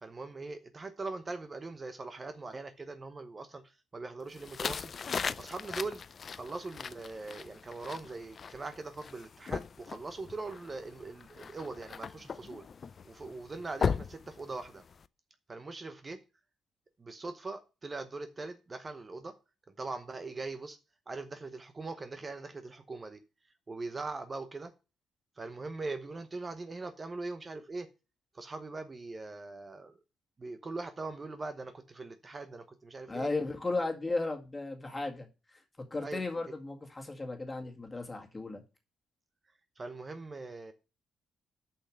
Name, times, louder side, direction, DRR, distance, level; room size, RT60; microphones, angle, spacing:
voice 1, 0.0-4.9 5.4-6.0 6.3-12.6 13.0-14.8 15.5-16.2 17.0-19.3 19.8-20.8 21.1-23.2 23.7-24.7 25.4-27.9 28.3-30.0 30.4-33.3 36.0-36.5 39.8-40.7, right 3 dB, 30° right, 0.9 m, -41 dB
sound 1, 4.3-15.0, left 6 dB, 45° left, 0.4 m, -39 dB
voice 2, 33.1-35.3 35.9-38.6, left 2 dB, 20° left, 2.1 m, -35 dB
6.9 x 5.7 x 6.3 m
cardioid pair, 90°, 0 cm